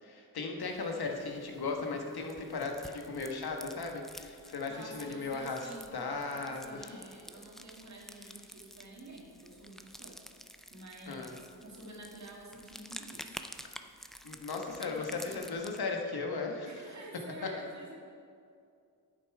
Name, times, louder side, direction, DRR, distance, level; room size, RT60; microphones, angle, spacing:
voice 1, 0.0-6.9 11.1-11.3 14.2-16.9, left 4 dB, 70° left, 2 dB, 1.2 m, -37 dB
sound 1, 0.6-15.8, equal, ahead, 0.3 m, -51 dB
voice 2, 4.7-6.0 6.3-10.2 10.7-13.4 14.7-15.5 16.6-18.0, right 1 dB, 45° right, -2 dB, 1.9 m, -49 dB
11.5 x 6.7 x 4.7 m, 2.4 s
wide cardioid pair, 140°, 39 cm